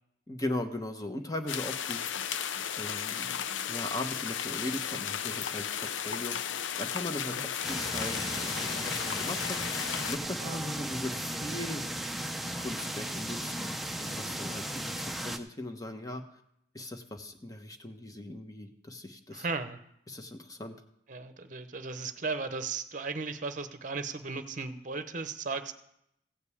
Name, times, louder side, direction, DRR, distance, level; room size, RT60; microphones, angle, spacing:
voice 1, 0.3-2.1 2.8-3.4 3.7-9.6 10.1-11.8 12.6-16.2 16.7-19.4 20.1-20.8, left 1 dB, 20° left, 6 dB, 0.9 m, -39 dB
sound 1, 1.5-10.2, left 8 dB, 80° left, 0.5 m, -34 dB
sound 2, 7.6-15.4, right 1 dB, ahead, 0.5 m, -36 dB
voice 2, 19.3-19.8 21.1-25.7, right 4 dB, 40° right, 10 dB, 0.8 m, -36 dB
15.5 x 5.3 x 8.4 m, 0.77 s
head